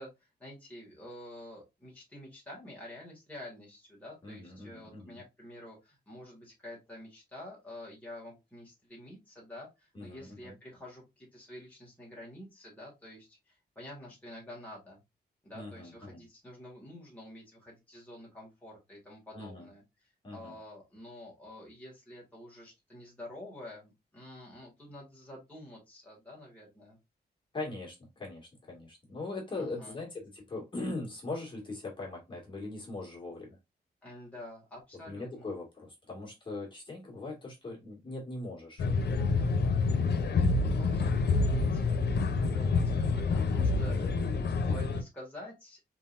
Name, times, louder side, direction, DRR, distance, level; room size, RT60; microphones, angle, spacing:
voice 1, 0.0-15.0 15.4-27.0 29.6-30.0 34.0-35.5 40.8-45.9, left 1 dB, 10° left, -4 dB, 1.9 m, -48 dB
voice 2, 4.2-5.2 9.9-10.5 15.5-16.2 19.3-19.7 20.2-20.5 27.5-33.6 35.1-38.9, left 2 dB, 30° left, -3 dB, 2.1 m, -40 dB
sound 1, 38.8-45.0, left 4 dB, 85° left, 0.7 m, -27 dB
4.6 x 3.9 x 2.5 m, 0.22 s
wide cardioid pair, 160°, 17 cm